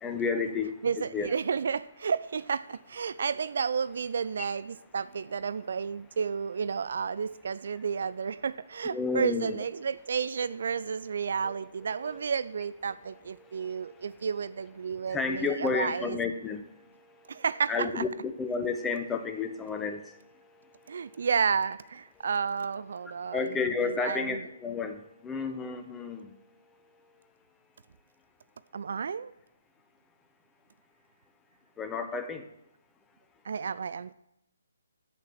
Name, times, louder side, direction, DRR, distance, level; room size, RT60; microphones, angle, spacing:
voice 1, 0.0-1.3 8.8-9.6 11.4-11.6 12.0-12.2 13.5-13.9 15.1-16.6 17.7-20.2 23.3-26.3 31.8-32.4, left 4 dB, 10° left, 7 dB, 0.8 m, -31 dB
voice 2, 0.8-16.2 17.3-18.0 20.9-23.5 23.8-24.4 28.7-29.3 33.4-34.1, right 6 dB, 55° right, 16 dB, 0.3 m, -31 dB
8.8 x 8.4 x 6.0 m, 0.82 s
figure-of-eight pair, 135°, 0 cm